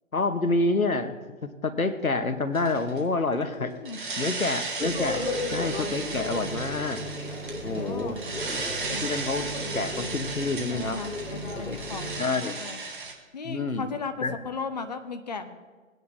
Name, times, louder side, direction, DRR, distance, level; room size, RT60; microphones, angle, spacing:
voice 1, 0.1-1.2 1.6-3.7 4.2-5.2 5.5-7.0 7.6-8.2 8.5-11.0 11.5-11.8 12.2-12.6 13.4-13.9 14.2-14.4, left 3 dB, 85° left, 10 dB, 1.1 m, -28 dB
sound 1, 2.5-3.0 3.8-13.1, right 3 dB, 40° right, 1.4 m, -36 dB
voice 2, 3.3-4.0 7.6-8.3 8.9-9.2 10.7-12.8 13.3-15.5, left 4 dB, 30° left, 8 dB, 0.6 m, -37 dB
sound 2, 4.8-12.2, equal, 60° left, 2.6 m, -35 dB
18.5 x 9.3 x 2.6 m, 1.4 s
figure-of-eight pair, 140°, 41 cm